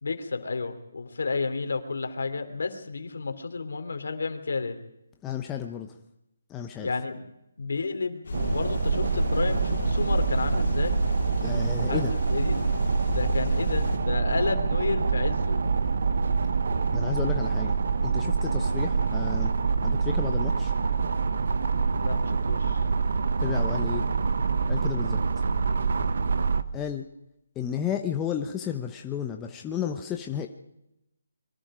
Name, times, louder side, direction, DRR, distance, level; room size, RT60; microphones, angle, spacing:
voice 1, 0.0-4.8 6.8-7.3 7.6-11.0 11.9-12.0 12.3-12.7 13.1-15.6 22.0-22.8 25.0-25.2, left 4 dB, 70° left, 8 dB, 3.3 m, -31 dB
voice 2, 5.2-6.0 6.5-6.9 11.4-12.1 16.9-17.7 18.0-19.5 19.8-20.7 23.4-24.1 24.7-25.4 26.7-27.1 27.6-30.5, left 9 dB, 10° left, 4 dB, 0.9 m, -32 dB
sound 1, 8.2-14.0, left 4 dB, 50° left, 5.0 m, -33 dB
sound 2, 8.3-26.6, right 5 dB, 60° right, 1.3 m, -26 dB
25.5 x 22.5 x 5.1 m, 0.85 s
hypercardioid pair, 170°, 0 cm